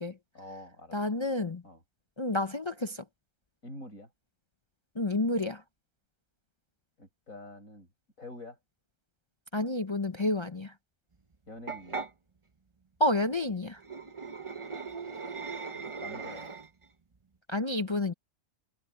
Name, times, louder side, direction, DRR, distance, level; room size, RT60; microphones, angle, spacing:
voice 1, 0.3-1.0 1.6-1.8 3.6-4.1 7.0-7.9 8.2-8.6 11.5-12.0 15.7-16.5, left 1 dB, 60° left, 8.5 m, -46 dB
voice 2, 0.9-1.6 2.2-3.0 5.0-5.6 9.5-10.7 13.0-13.8 17.5-18.1, left 1 dB, 35° left, 0.4 m, -29 dB
sound 1, 11.7-12.1 13.8-16.8, right 4 dB, 25° right, 0.8 m, -39 dB
omnidirectional pair, 1.6 m